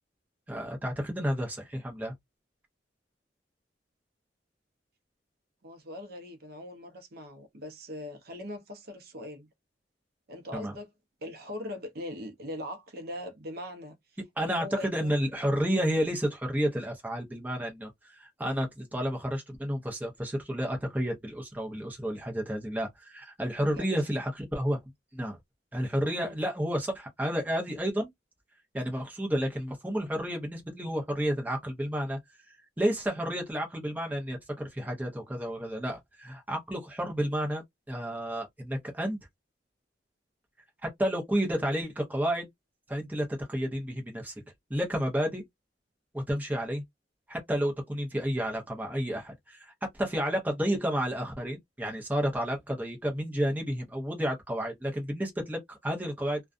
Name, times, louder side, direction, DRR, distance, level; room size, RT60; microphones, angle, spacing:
voice 1, 0.5-2.1 10.5-10.7 14.4-24.8 25.1-25.4 25.7-28.1 28.7-32.2 32.5-39.2 41.0-42.5 42.9-44.3 44.7-45.4 46.1-46.8 47.3-56.4, equal, 10° right, 0.7 m, -31 dB
voice 2, 5.6-9.5 10.3-10.9 11.2-14.0 14.4-15.2 23.7-24.0 26.2-26.4, left 1 dB, 60° right, 0.6 m, -41 dB
2.4 x 2.2 x 2.4 m
head